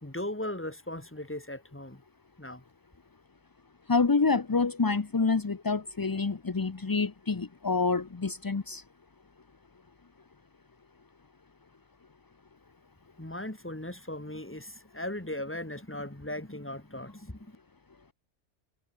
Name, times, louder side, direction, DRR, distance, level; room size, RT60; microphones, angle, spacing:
voice 1, 0.0-2.0 2.4-2.6 13.2-17.5, left 1 dB, 10° left, 1.8 m, -38 dB
voice 2, 3.9-8.8, left 4 dB, 25° left, 0.5 m, -27 dB
omnidirectional pair, 1.2 m